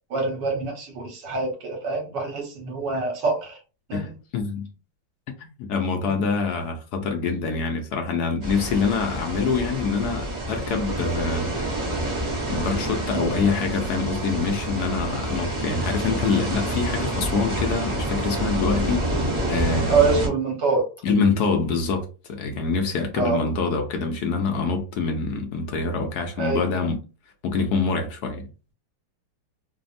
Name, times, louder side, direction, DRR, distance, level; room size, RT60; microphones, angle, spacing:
voice 1, 0.1-3.6 3.9-4.1 11.0-11.2 13.1-13.3 19.9-20.9 23.2-23.4 26.4-26.7, right 4 dB, 75° right, 1.6 m, -25 dB
voice 2, 3.9-4.7 5.4-11.5 12.5-19.1 19.5-20.2 21.0-27.0 27.4-28.5, left 4 dB, 70° left, 1.0 m, -25 dB
sound 1, 8.4-20.3, right 1 dB, 40° right, 0.6 m, -28 dB
3.3 x 2.0 x 2.5 m
omnidirectional pair, 2.0 m